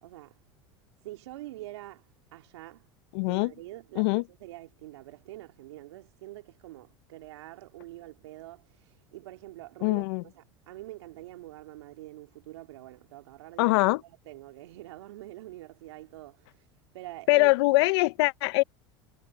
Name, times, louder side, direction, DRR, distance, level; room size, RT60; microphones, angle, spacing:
voice 1, 0.0-0.4 1.0-2.9 3.3-16.7 16.9-17.5, right 16 dB, 80° right, 2.5 m, -45 dB
voice 2, 3.1-3.5 4.0-4.2 9.8-10.2 13.6-14.0 17.3-18.6, left 24 dB, 70° left, 0.9 m, -23 dB
hypercardioid pair, 85°, 14 cm